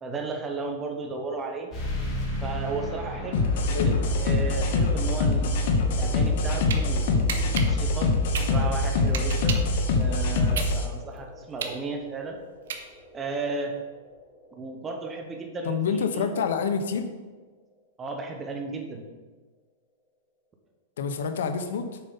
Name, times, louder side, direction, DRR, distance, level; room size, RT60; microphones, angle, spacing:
voice 1, 0.0-1.7 2.4-3.4 3.8-5.6 5.9-8.1 8.5-9.6 9.9-12.4 13.1-13.8 14.5-16.5 18.0-19.1, right 3 dB, 15° right, 3 dB, 1.0 m, -34 dB
sound 1, 1.7-16.8, left 1 dB, 20° left, 2.6 m, -39 dB
sound 2, 3.3-10.8, left 3 dB, 60° left, 1.2 m, -24 dB
sound 3, 6.3-6.8 7.3-9.8 10.2-13.2, right 7 dB, 80° right, 1.1 m, -33 dB
voice 2, 15.6-17.1 21.0-22.0, left 6 dB, 80° left, 8 dB, 0.9 m, -27 dB
7.4 x 5.3 x 5.6 m, 1.3 s
supercardioid pair, 155°, 0 cm